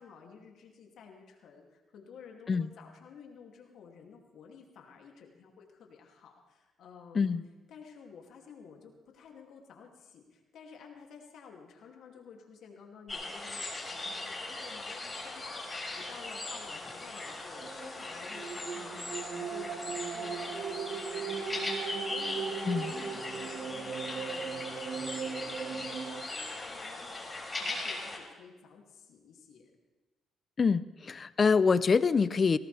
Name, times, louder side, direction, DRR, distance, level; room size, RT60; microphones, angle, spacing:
voice 1, 0.0-7.4 7.7-29.7, left 6 dB, 75° left, 1 dB, 2.7 m, -52 dB
voice 2, 7.1-7.5 22.6-22.9 30.6-32.6, left 5 dB, 40° left, 16 dB, 0.6 m, -25 dB
sound 1, 13.1-28.2, left 2 dB, 20° left, 4.4 m, -39 dB
sound 2, 17.5-26.2, right 6 dB, 60° right, 1.5 m, -38 dB
19.5 x 17.5 x 3.5 m, 1.2 s
cardioid pair, 90°, 0 cm